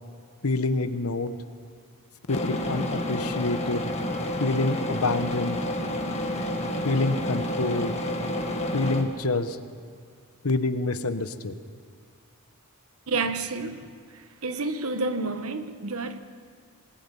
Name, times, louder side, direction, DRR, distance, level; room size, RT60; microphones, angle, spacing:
voice 1, 0.4-1.4 2.3-3.9 4.4-5.6 6.8-8.0 8.7-9.6 10.4-11.5, left 2 dB, 75° left, 11 dB, 1.1 m, -27 dB
sound 1, 2.3-9.0, left 1 dB, 30° left, 2.0 m, -29 dB
voice 2, 13.1-13.8 14.4-16.2, right 3 dB, 70° right, 9 dB, 1.3 m, -29 dB
27.0 x 20.5 x 5.5 m, 2.2 s
head